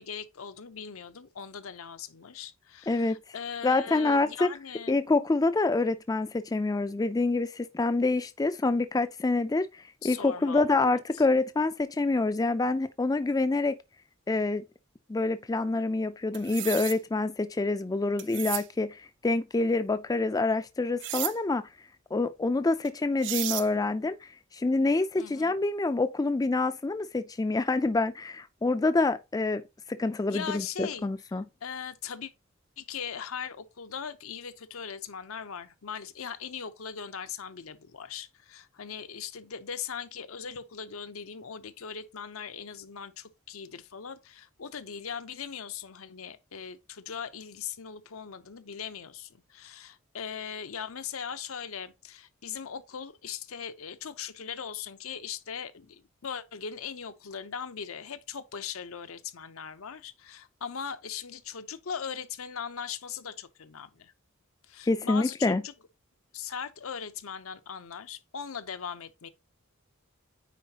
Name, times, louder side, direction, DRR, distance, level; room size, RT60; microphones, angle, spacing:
voice 1, 0.0-5.0 10.0-10.6 11.1-11.2 25.2-25.5 30.3-31.1 31.6-32.3 32.8-64.1 64.7-65.7 66.3-69.3, left 7 dB, 80° left, 0.7 m, -39 dB
voice 2, 2.9-3.2 3.6-4.5 4.9-13.8 14.3-14.6 15.1-21.7 22.1-29.6 29.9-31.4 64.8-65.6, left 3 dB, 20° left, 0.3 m, -27 dB
sound 1, 16.3-17.0 18.2-18.7 21.0-21.3 22.8-22.9 23.2-23.7, right 16 dB, 55° right, 0.4 m, -33 dB
9.3 x 4.0 x 2.9 m
head